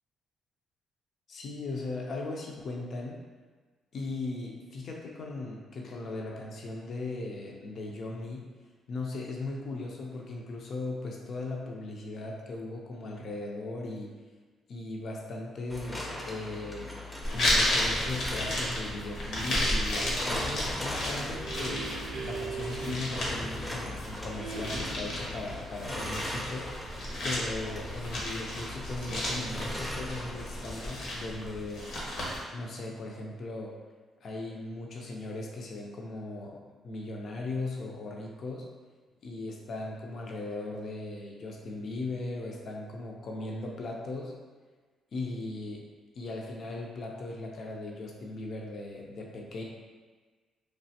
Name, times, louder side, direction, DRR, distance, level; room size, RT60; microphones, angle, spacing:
voice 1, 1.3-3.2 3.9-8.5 8.9-14.2 14.7-16.9 17.3-21.9 22.2-27.0 27.2-31.9 32.5-33.8 34.2-38.7 39.2-44.4 45.1-45.9 46.2-49.6, left 2 dB, 60° left, -1 dB, 0.5 m, -38 dB
sound 1, 15.7-30.9, left 1 dB, 10° left, 0.5 m, -40 dB
sound 2, 17.2-32.4, left 1 dB, 75° left, 0.8 m, -33 dB
sound 3, 20.9-23.9 24.4-25.3, right 4 dB, 55° right, 0.4 m, -40 dB
3.1 x 2.4 x 2.7 m, 1.4 s
cardioid pair, 90°, 0 cm